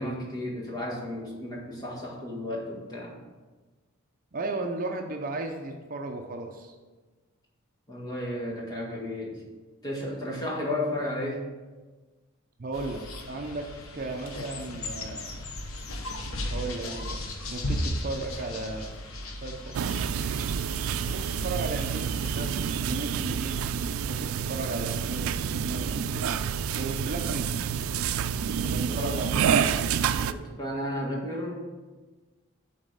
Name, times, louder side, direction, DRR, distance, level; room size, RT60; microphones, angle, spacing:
voice 1, 0.0-3.2 7.9-9.4 9.8-11.4 28.9-29.9 30.3-31.6, left 1 dB, 20° left, -3 dB, 1.7 m, -33 dB
voice 2, 4.3-6.7 12.6-13.0 13.3-13.7 13.9-15.4 16.5-17.2 17.5-18.9 19.3-19.8 21.1-22.5 22.8-25.3 25.7-26.5 26.8-27.6 28.6-29.9, right 3 dB, 45° right, 3 dB, 0.6 m, -35 dB
sound 1, 12.7-22.8, left 1 dB, 85° left, 1.0 m, -36 dB
sound 2, 19.7-30.3, right 7 dB, 90° right, 0.3 m, -28 dB
7.4 x 4.1 x 6.7 m, 1.3 s
head